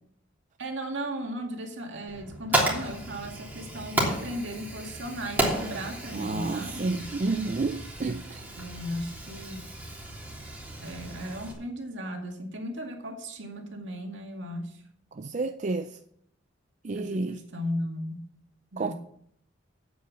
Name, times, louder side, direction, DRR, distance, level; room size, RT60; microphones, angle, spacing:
voice 1, 0.6-7.1 8.6-9.6 10.8-14.8 16.9-18.2 18.7-18.9, equal, 70° right, 2.2 m, -36 dB
Fire, 2.1-11.5, right 1 dB, 10° right, 3.1 m, -33 dB
voice 2, 6.1-8.4 15.1-16.0 16.8-17.4 18.8-18.9, right 3 dB, 40° right, 0.5 m, -30 dB
8.9 x 8.5 x 7.4 m
head